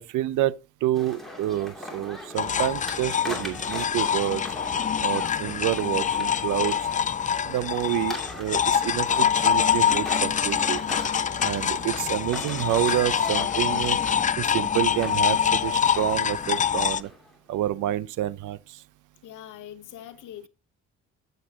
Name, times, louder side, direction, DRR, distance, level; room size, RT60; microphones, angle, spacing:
voice 1, 0.0-4.4 5.0-6.9 7.4-10.8 11.4-14.0 14.4-17.1 17.5-18.8, right 14 dB, 85° right, 0.6 m, -28 dB
sound 1, 0.9-17.4, left 1 dB, ahead, 2.5 m, -40 dB
sound 2, 2.4-17.0, left 8 dB, 25° left, 0.4 m, -25 dB
voice 2, 19.2-20.5, left 11 dB, 90° left, 1.0 m, -42 dB
8.0 x 7.4 x 2.8 m
cardioid pair, 90°, 30 cm